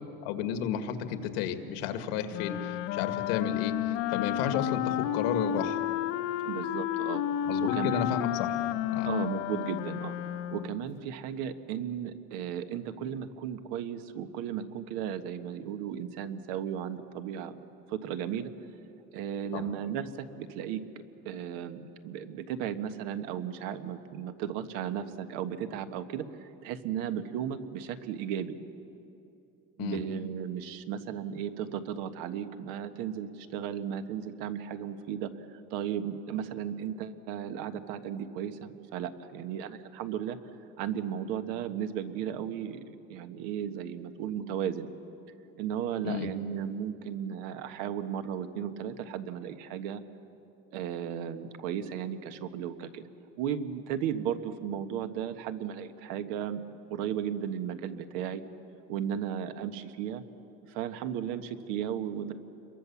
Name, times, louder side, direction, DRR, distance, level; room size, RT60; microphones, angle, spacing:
voice 1, 0.2-5.8 7.5-8.5 8.9-9.1 19.5-19.7 29.8-30.0 46.0-46.3, left 8 dB, 90° left, 8 dB, 1.9 m, -32 dB
Wind instrument woodwind instrument, 2.3-10.8, left 12 dB, 65° left, 1.0 m, -31 dB
voice 2, 6.4-7.2 7.6-8.2 9.0-10.1 10.5-18.5 19.1-20.8 21.2-28.5 29.8-40.4 40.8-44.9 45.6-50.0 50.7-53.0 53.4-56.6 56.9-58.4 58.9-60.2 60.7-62.3, right 9 dB, 80° right, 9 dB, 1.5 m, -35 dB
28.0 x 22.5 x 7.1 m, 2.8 s
cardioid pair, 155°, 29 cm